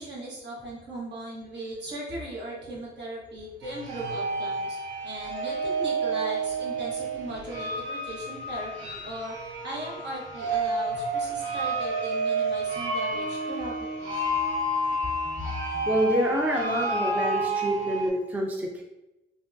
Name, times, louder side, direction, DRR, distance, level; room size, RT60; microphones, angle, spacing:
voice 1, 0.0-4.8 5.0-9.4 9.6-14.3, right 1 dB, 60° right, -3 dB, 1.1 m, -38 dB
sound 1, 3.6-18.1, right 2 dB, 80° right, 0.8 m, -30 dB
voice 2, 15.3-18.8, equal, 10° right, 0 dB, 0.4 m, -27 dB
3.4 x 2.2 x 2.5 m, 0.96 s
cardioid pair, 90°, 20 cm